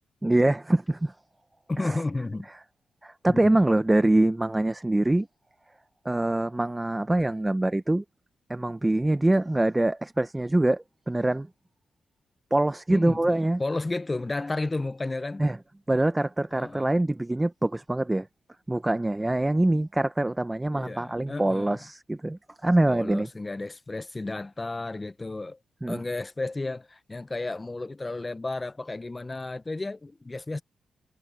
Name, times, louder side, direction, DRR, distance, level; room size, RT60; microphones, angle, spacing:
voice 1, 0.2-1.1 1.8-2.0 3.0-5.3 6.0-8.0 8.5-11.5 12.5-13.6 15.4-15.6 15.9-18.3 18.7-23.3 25.8-26.0, right 1 dB, 15° right, 0.8 m, -24 dB
voice 2, 1.7-2.5 3.3-3.5 12.9-13.2 13.6-15.4 16.5-16.9 20.7-21.8 22.9-25.6 25.9-30.6, left 2 dB, 25° left, 0.9 m, -32 dB
cardioid pair, 70°, 0 cm